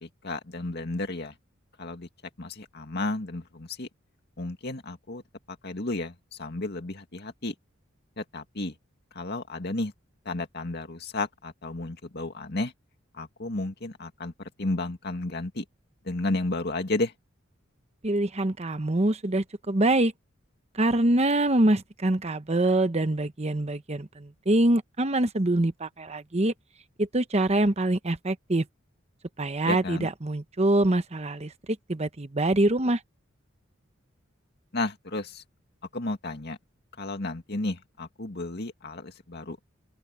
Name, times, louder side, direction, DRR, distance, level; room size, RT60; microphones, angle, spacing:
voice 1, 0.0-1.3 1.8-2.1 2.4-3.9 4.4-5.2 5.6-7.5 8.2-8.7 9.2-9.9 10.3-12.7 13.1-15.6 16.1-17.1 29.7-30.1 34.7-35.4 35.9-36.6 37.0-39.6, left 2 dB, 55° left, 2.2 m, -32 dB
voice 2, 18.0-20.1 20.7-26.5 27.0-28.6 29.4-31.5 31.9-33.0, right 1 dB, 35° right, 1.0 m, -24 dB
open air
head